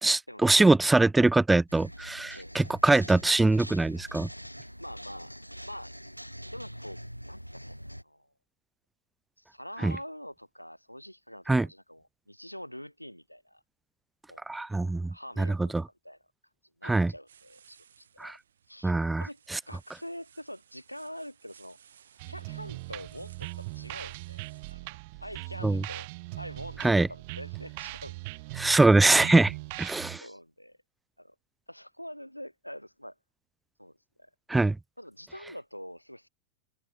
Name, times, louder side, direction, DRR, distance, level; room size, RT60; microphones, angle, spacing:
voice 1, 0.0-4.3 9.8-9.9 11.5-11.7 14.5-15.1 15.4-15.8 16.8-17.1 18.2-18.4 18.8-19.3 19.5-19.6 25.6-25.8 26.8-27.1 28.6-29.5 29.8-30.2 34.5-34.8, right 2 dB, 5° right, 0.3 m, -23 dB
sound 1, 1.7-8.0, equal, 90° right, 2.5 m, -44 dB
voice 2, 4.8-6.0 6.5-7.0 7.3-8.3 9.4-13.6 14.3-14.4 15.1-15.7 16.0-16.2 16.8-18.4 18.7-18.9 19.2-19.4 19.7-21.8 22.3-26.1 26.3-28.2 30.2-30.8 31.2-31.3 31.7-33.1 33.8-34.3 35.0-36.3, equal, 90° left, 1.1 m, -45 dB
sound 2, 17.3-24.7, right 8 dB, 65° right, 7.9 m, -60 dB
sound 3, 22.2-30.2, right 25 dB, 50° right, 3.2 m, -40 dB
figure-of-eight pair, 90°, 0 cm